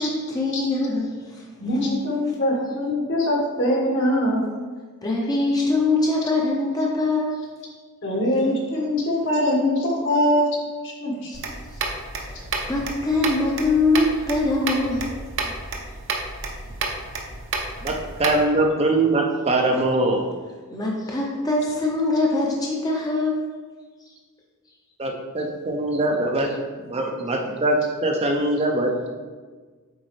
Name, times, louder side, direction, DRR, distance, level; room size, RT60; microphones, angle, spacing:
voice 1, 0.0-1.4 5.0-7.5 11.3-11.4 11.7-11.8 12.2-15.1 20.7-23.5, left 2 dB, 15° left, -2 dB, 0.7 m, -23 dB
voice 2, 1.6-4.4 8.0-10.5 10.8-11.3, left 1 dB, 55° left, -2 dB, 1.5 m, -22 dB
sound 1, 11.3-18.4, right 3 dB, 55° right, 0.8 m, -31 dB
voice 3, 17.8-20.3 25.0-26.6 26.9-29.1, right 2 dB, 30° right, 2 dB, 0.5 m, -22 dB
8.0 x 4.1 x 3.2 m, 1.4 s
head